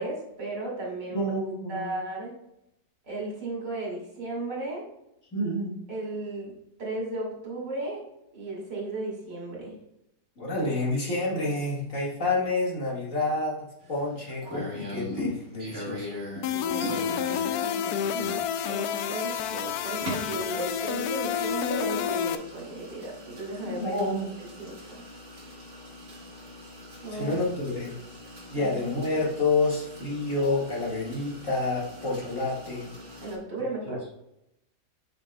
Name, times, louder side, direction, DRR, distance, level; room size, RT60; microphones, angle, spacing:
voice 1, 0.0-1.3 1.7-2.3 3.0-4.9 5.9-6.5 6.8-8.0 8.3-9.7 16.5-18.3 18.6-24.0 24.6-25.0 27.0-27.4 28.5-28.7 33.2-34.0, right 2 dB, 75° right, -3 dB, 3.0 m, -35 dB
voice 2, 1.1-1.9 5.3-5.7 10.4-16.1 23.6-24.3 27.1-28.0 28.5-32.9, left 2 dB, 45° left, -5 dB, 2.4 m, -29 dB
sound 1, 13.8-33.3, left 1 dB, 40° right, 3.1 m, -42 dB
sound 2, 16.4-22.3, left 9 dB, 70° left, 1.0 m, -29 dB
8.0 x 6.5 x 2.4 m, 0.84 s
omnidirectional pair, 1.8 m